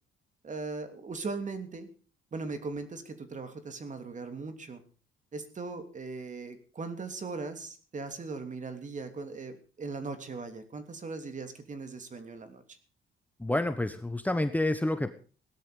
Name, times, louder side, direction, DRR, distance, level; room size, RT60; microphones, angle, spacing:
voice 1, 0.4-1.9 2.3-4.8 5.3-12.6, right 4 dB, 40° right, 8 dB, 3.1 m, -39 dB
voice 2, 13.4-15.1, left 1 dB, 10° left, 9 dB, 1.2 m, -28 dB
17.0 x 12.5 x 5.2 m, 0.39 s
cardioid pair, 90°, 20 cm